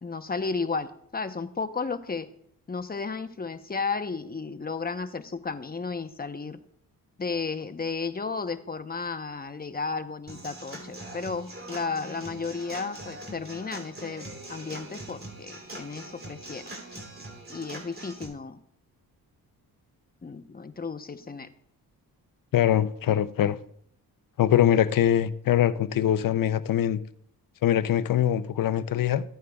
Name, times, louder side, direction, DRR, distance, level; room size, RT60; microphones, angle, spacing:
voice 1, 0.0-2.3 2.7-6.6 7.2-16.7 17.5-18.6 20.2-21.5, left 4 dB, 25° left, 0.9 m, -33 dB
Human voice / Acoustic guitar / Drum, 10.3-18.3, right 1 dB, 35° right, 3.1 m, -42 dB
voice 2, 22.5-23.6 24.4-27.0 27.6-29.2, left 10 dB, 60° left, 0.6 m, -23 dB
15.0 x 9.3 x 2.4 m
cardioid pair, 70°, 38 cm